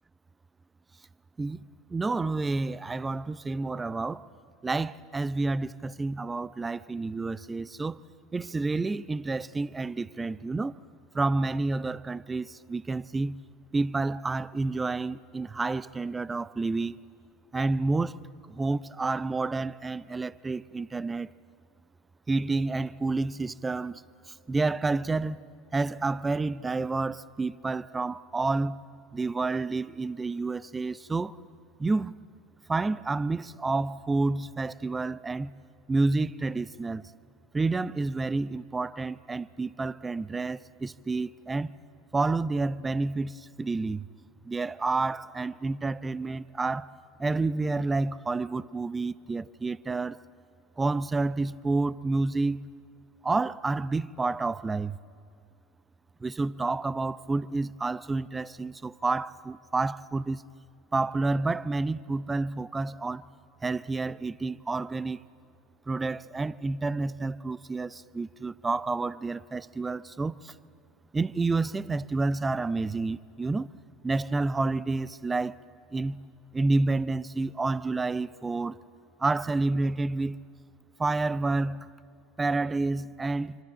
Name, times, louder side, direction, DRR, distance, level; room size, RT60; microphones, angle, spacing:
voice 1, 1.9-4.3 4.6-8.0 8.3-10.8 11.1-13.4 13.7-17.0 17.5-18.2 18.5-21.3 22.3-25.4 25.7-28.8 29.1-31.4 31.8-32.1 32.7-35.5 35.9-37.1 37.5-41.7 42.1-44.1 44.4-46.9 47.2-50.2 50.8-52.7 53.2-55.0 56.2-60.4 60.9-63.2 63.6-65.2 65.9-70.5 71.1-73.7 74.0-75.6 75.9-76.2 76.5-78.8 79.2-80.4 81.0-81.9 82.4-83.6, right 3 dB, 15° right, 0.6 m, -29 dB
26.0 x 24.5 x 8.6 m
figure-of-eight pair, 80°, 0 cm